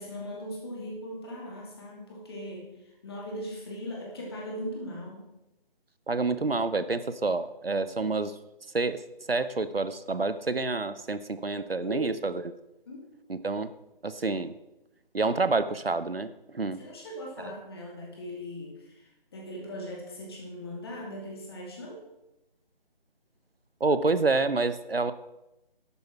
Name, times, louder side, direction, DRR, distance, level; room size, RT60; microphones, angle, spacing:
voice 1, 0.0-5.2 11.8-12.0 12.9-13.0 16.7-22.0, equal, 25° left, -1 dB, 2.6 m, -39 dB
voice 2, 6.1-8.3 8.7-9.0 9.3-12.4 13.3-13.7 14.0-14.6 15.1-16.8 17.4-17.5 23.8-25.1, right 3 dB, 80° right, 13 dB, 0.9 m, -28 dB
11.0 x 8.6 x 4.6 m, 0.92 s
figure-of-eight pair, 155°, 29 cm